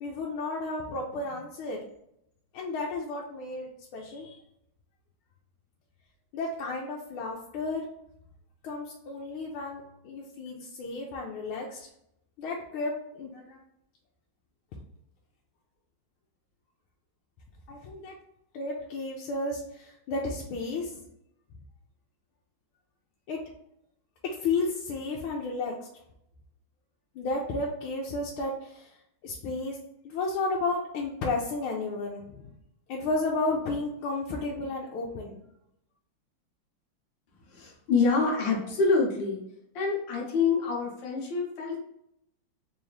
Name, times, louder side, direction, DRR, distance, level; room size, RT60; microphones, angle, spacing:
voice 1, 0.0-1.8 2.5-4.4 6.3-7.9 8.6-11.9 12.4-13.6 17.7-18.2 18.5-21.0 23.3-23.4 24.2-25.7 27.1-29.0 29.2-29.8 30.0-32.5 32.9-35.4, left 3 dB, 85° left, -1 dB, 1.5 m, -32 dB
voice 2, 37.4-39.4 39.7-41.8, left 4 dB, 70° left, -1 dB, 1.5 m, -26 dB
3.8 x 2.7 x 3.2 m, 0.77 s
omnidirectional pair, 2.3 m